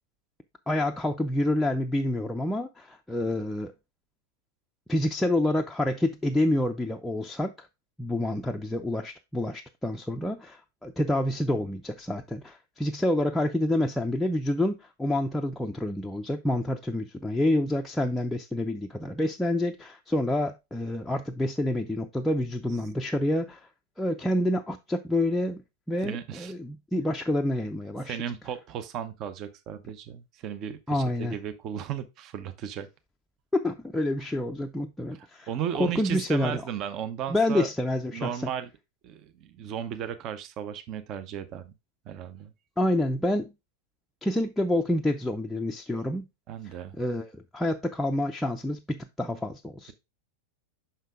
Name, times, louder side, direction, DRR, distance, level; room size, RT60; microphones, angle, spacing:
voice 1, 0.7-3.7 4.9-7.7 8.0-23.7 24.0-28.2 30.9-31.4 33.5-35.5 35.7-36.6 37.3-38.5 42.8-43.5 44.2-46.3 46.6-49.9, left 1 dB, 5° left, 0.5 m, -28 dB
voice 2, 26.0-26.5 28.1-32.9 34.2-34.3 35.1-37.7 38.1-38.7 39.0-41.7 42.1-42.5 46.5-46.9, right 9 dB, 35° right, 0.8 m, -35 dB
5.7 x 5.6 x 3.5 m
figure-of-eight pair, 90°, 0 cm